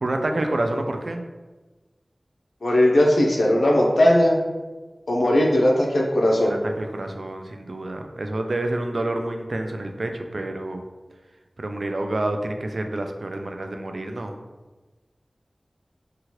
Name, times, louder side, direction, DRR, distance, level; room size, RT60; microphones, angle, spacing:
voice 1, 0.0-1.2 6.4-10.8 11.6-14.3, right 1 dB, 70° right, 5 dB, 0.3 m, -28 dB
voice 2, 2.6-4.4 5.1-6.6, left 1 dB, 85° left, -1 dB, 0.5 m, -18 dB
2.9 x 2.4 x 2.9 m, 1.2 s
wide cardioid pair, 45°, 0 cm